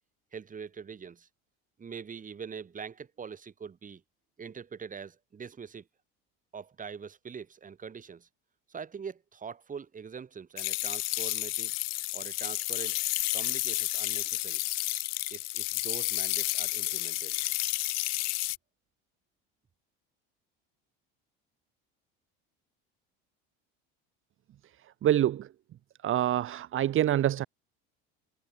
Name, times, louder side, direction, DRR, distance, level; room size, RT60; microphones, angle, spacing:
voice 1, 0.3-1.3 1.8-4.0 4.4-5.8 6.5-8.3 8.7-11.7 12.1-13.0 13.3-14.6 15.3-17.4, right 6 dB, 25° right, 5.3 m, -43 dB
sound 1, 10.6-18.6, left 20 dB, 60° left, 1.0 m, -31 dB
voice 2, 24.6-25.5 26.0-27.5, right 12 dB, 45° right, 2.0 m, -27 dB
supercardioid pair, 115°, 29 cm